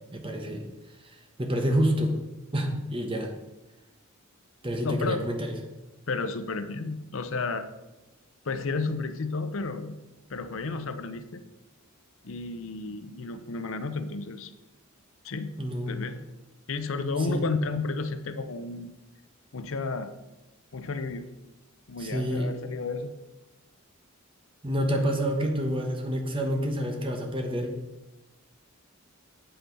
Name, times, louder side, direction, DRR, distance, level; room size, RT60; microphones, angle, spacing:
voice 1, 0.1-0.6 1.1-2.1 2.5-3.3 4.6-5.5 15.6-15.9 17.1-17.4 22.0-22.5 24.6-27.7, equal, 25° right, 4 dB, 1.1 m, -28 dB
voice 2, 4.8-5.2 6.1-7.7 8.5-10.0 10.3-11.4 12.2-14.5 15.2-15.5 15.9-16.2 16.7-18.9 19.5-20.1 20.7-21.3 21.9-23.1, left 3 dB, 70° left, 11 dB, 0.6 m, -32 dB
8.3 x 5.8 x 5.4 m, 1.0 s
head